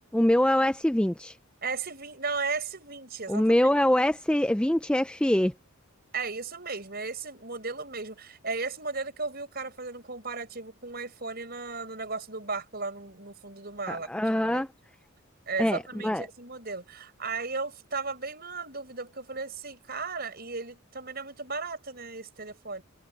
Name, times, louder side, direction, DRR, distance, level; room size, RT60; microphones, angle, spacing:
voice 1, 0.1-1.3 3.3-5.5 13.9-14.7 15.6-16.3, left 1 dB, 5° left, 0.4 m, -24 dB
voice 2, 1.6-3.6 6.1-14.1 14.4-14.7 15.5-22.8, right 4 dB, 45° right, 5.8 m, -35 dB
head